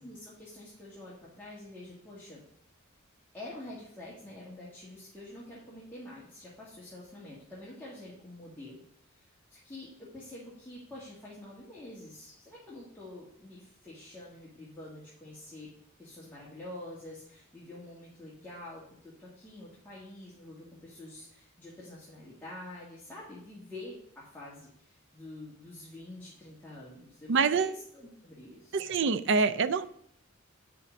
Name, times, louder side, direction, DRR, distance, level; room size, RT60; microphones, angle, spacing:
voice 1, 0.0-2.4 3.3-8.8 9.1-15.7 16.0-27.3 27.6-28.8, left 1 dB, 10° left, -9 dB, 1.9 m, -47 dB
voice 2, 27.3-27.7 28.7-29.9, right 5 dB, 60° right, 14 dB, 0.5 m, -26 dB
8.5 x 5.8 x 5.2 m, 0.67 s
head